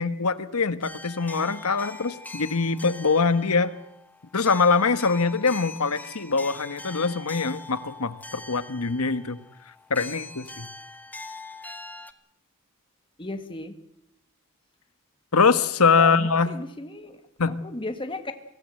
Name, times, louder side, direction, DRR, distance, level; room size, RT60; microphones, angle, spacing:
voice 1, 0.0-3.7 4.3-9.4 9.7-10.7 15.3-16.6 17.4-17.6, left 4 dB, 80° left, 12 dB, 1.3 m, -23 dB
sound 1, 0.8-12.1, left 3 dB, 5° left, 1.1 m, -42 dB
voice 2, 13.2-13.7 15.9-17.2 17.6-18.3, left 2 dB, 25° left, 7 dB, 1.7 m, -35 dB
24.0 x 16.5 x 7.7 m, 0.79 s
head